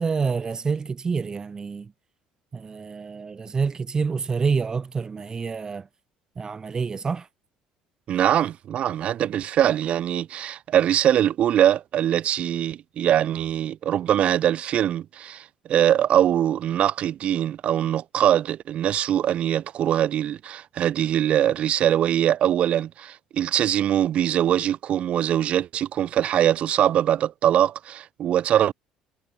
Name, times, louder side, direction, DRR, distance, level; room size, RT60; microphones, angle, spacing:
voice 1, 0.0-1.9 2.5-5.9 6.4-7.3, right 5 dB, 30° right, 6.8 m, -27 dB
voice 2, 8.1-28.7, right 10 dB, 55° right, 4.8 m, -22 dB
supercardioid pair, 95°, 2 cm